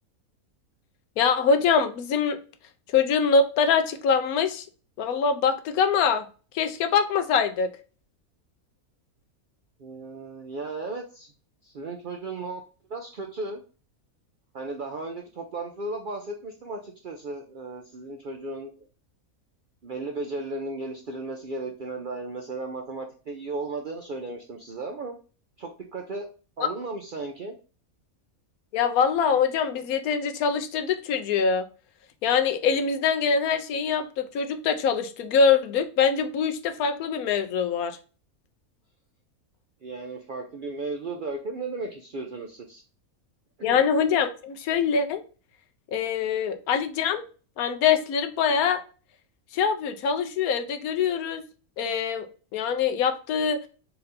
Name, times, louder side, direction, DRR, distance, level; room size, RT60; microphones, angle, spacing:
voice 1, 1.2-2.4 2.9-4.6 5.0-6.2 6.5-7.7 26.6-26.7 28.7-31.7 32.2-38.0 43.6-45.2 45.9-47.2 47.6-48.8 49.5-51.4 51.8-52.3 52.5-53.6, left 6 dB, 85° left, 8 dB, 1.1 m, -24 dB
voice 2, 9.8-11.3 11.6-12.6 12.9-13.6 14.5-18.9 19.8-25.2 25.6-26.3 26.6-27.5 39.8-42.8 43.6-43.8, right 3 dB, 65° right, 2 dB, 0.5 m, -35 dB
4.3 x 2.6 x 4.0 m, 0.36 s
omnidirectional pair, 1.5 m